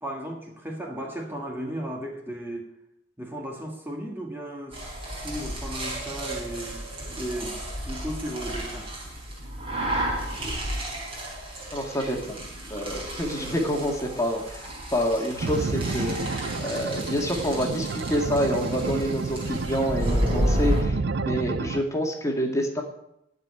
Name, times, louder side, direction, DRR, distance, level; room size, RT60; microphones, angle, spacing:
voice 1, 0.0-2.7 3.2-6.8 7.1-7.6 7.8-8.9 13.4-13.7, right 1 dB, 10° right, 0 dB, 1.7 m, -35 dB
sound 1, 4.7-20.8, right 1 dB, 30° right, 4.8 m, -32 dB
voice 2, 11.7-12.4 12.7-21.0 21.3-22.8, equal, 15° left, 1 dB, 2.1 m, -27 dB
sound 2, 15.4-21.8, right 3 dB, 65° right, 0.6 m, -31 dB
16.0 x 5.4 x 9.8 m, 0.82 s
head